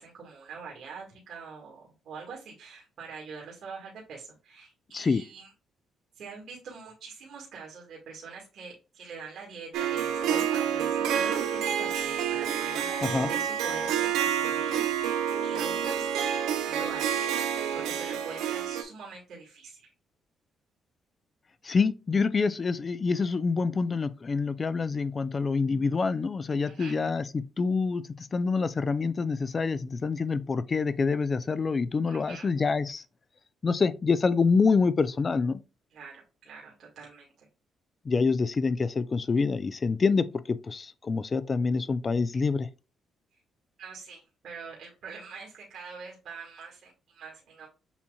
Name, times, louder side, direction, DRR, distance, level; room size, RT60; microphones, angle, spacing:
voice 1, 0.0-5.5 6.2-16.3 16.6-17.2 17.7-19.9 26.6-27.0 32.1-32.5 35.9-37.5 43.8-47.7, right 5 dB, 70° right, 1.6 m, -44 dB
Harp, 9.7-18.8, right 9 dB, 90° right, 0.6 m, -28 dB
voice 2, 21.6-33.0 33.6-35.6 38.1-42.7, left 4 dB, 35° left, 0.4 m, -26 dB
7.0 x 2.9 x 2.3 m
cardioid pair, 90°, 0 cm